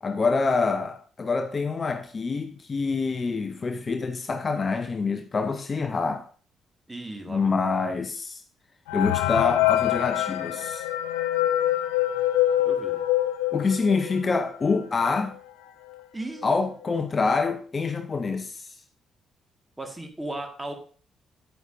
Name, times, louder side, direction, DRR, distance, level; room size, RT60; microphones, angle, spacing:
voice 1, 0.0-6.2 7.3-8.4 8.9-10.9 13.5-15.3 16.4-18.7, left 4 dB, 35° left, 0.7 m, -26 dB
voice 2, 6.9-7.5 12.6-13.0 16.1-16.5 19.8-20.7, right 2 dB, 15° right, 1.7 m, -36 dB
sound 1, 8.9-14.3 14.8-14.9 15.1-15.2 15.9-16.0 16.4-16.7, left 13 dB, 70° left, 0.4 m, -25 dB
9.2 x 9.1 x 2.6 m
figure-of-eight pair, 40°, 0 cm